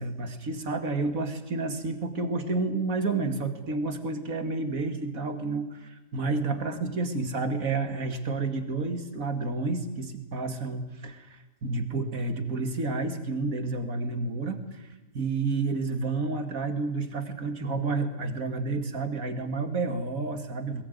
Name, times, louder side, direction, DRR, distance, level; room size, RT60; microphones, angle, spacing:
voice 1, 0.0-20.8, right 3 dB, 50° right, 8 dB, 2.6 m, -30 dB
21.5 x 21.0 x 9.4 m, 1.0 s
omnidirectional pair, 1.8 m